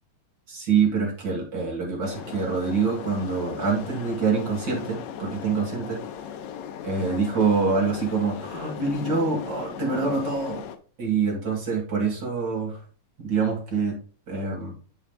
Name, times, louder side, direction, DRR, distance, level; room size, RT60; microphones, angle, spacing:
voice 1, 0.5-6.0 6.8-10.6 11.0-12.8 13.2-14.0 14.3-14.7, right 5 dB, 40° right, -1 dB, 2.0 m, -25 dB
sound 1, 2.0-10.8, left 8 dB, 75° left, 1.7 m, -37 dB
9.2 x 4.8 x 3.5 m, 0.39 s
omnidirectional pair, 3.8 m